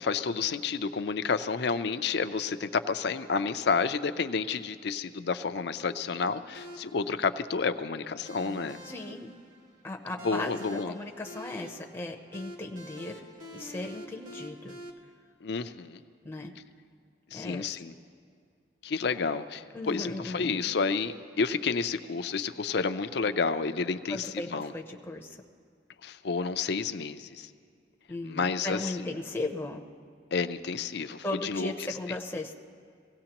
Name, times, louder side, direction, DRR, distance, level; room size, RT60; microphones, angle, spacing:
voice 1, 0.0-8.8 10.2-10.9 15.4-16.0 17.3-17.9 18.8-24.7 26.0-27.5 28.2-29.1 30.3-31.7, left 5 dB, 60° left, 10 dB, 0.5 m, -30 dB
sound 1, 6.5-14.9, equal, 45° right, 1.7 m, -47 dB
voice 2, 8.8-9.3 9.8-13.2 13.5-14.8 16.2-16.5 17.3-17.8 19.7-20.6 24.1-25.4 28.1-29.8 31.2-32.6, left 2 dB, 10° left, 1 dB, 0.7 m, -37 dB
23.5 x 17.0 x 3.0 m, 2.2 s
head